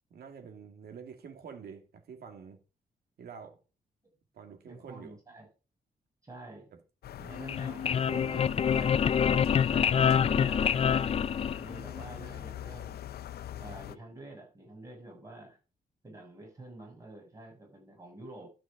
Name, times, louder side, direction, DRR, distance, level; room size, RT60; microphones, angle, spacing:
voice 1, 0.1-2.6 3.2-3.6 4.3-5.2 7.9-8.6, right 6 dB, 90° right, 2.4 m, -47 dB
voice 2, 4.7-5.5 6.2-6.7 7.2-8.4 8.7-8.9 9.7-11.1 11.6-13.0 13.5-15.6 16.0-18.5, right 2 dB, 20° right, 6.9 m, -47 dB
sound 1, 7.0-14.0, left 11 dB, 85° left, 0.6 m, -43 dB
sound 2, 7.3-12.0, left 7 dB, 40° left, 0.4 m, -26 dB
12.5 x 6.0 x 5.0 m
wide cardioid pair, 145°, 16 cm